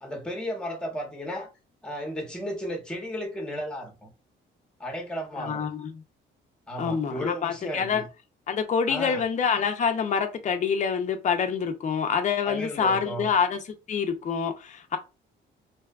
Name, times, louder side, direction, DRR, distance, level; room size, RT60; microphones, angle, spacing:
voice 1, 0.0-1.5 1.8-4.1 4.8-5.7 6.7-8.1 8.9-9.2 12.4-13.3, equal, 5° left, 0.8 m, -34 dB
voice 2, 5.4-6.0 6.8-8.0 8.5-13.6 13.9-15.0, left 6 dB, 40° left, 0.5 m, -26 dB
2.6 x 2.2 x 2.3 m
cardioid pair, 90°, 20 cm